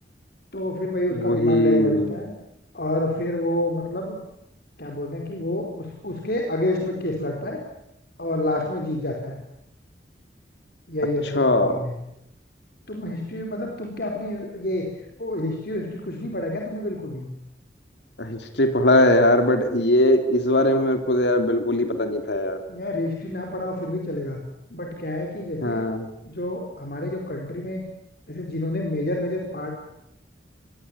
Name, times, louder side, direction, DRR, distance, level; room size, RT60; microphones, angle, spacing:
voice 1, 0.5-2.3 2.7-4.2 4.8-7.6 8.2-9.4 10.9-11.9 12.9-14.8 15.2-17.3 22.7-24.4 24.7-25.8 26.2-27.8 28.3-29.7, left 1 dB, 60° left, 1 dB, 4.6 m, -28 dB
voice 2, 1.1-2.1 11.3-11.8 18.2-22.6 25.6-26.1, left 1 dB, 80° left, 7 dB, 3.3 m, -20 dB
26.0 x 21.5 x 9.0 m, 0.82 s
head